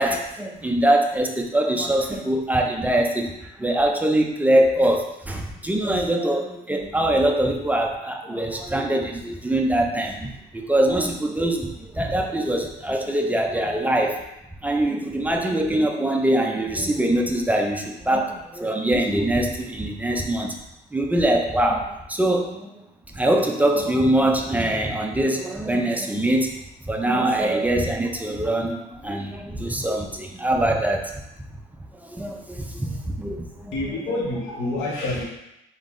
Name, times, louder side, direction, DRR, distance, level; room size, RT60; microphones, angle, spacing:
voice 1, 0.0-3.3 3.6-14.2 14.6-20.6 20.9-22.8 23.1-26.5 26.9-31.1 32.2-33.8, right 1 dB, 10° right, 1 dB, 0.4 m, -23 dB
voice 2, 33.7-35.3, left 2 dB, 75° left, -4 dB, 1.2 m, -27 dB
4.4 x 3.7 x 2.5 m, 0.88 s
cardioid pair, 140°, 20 cm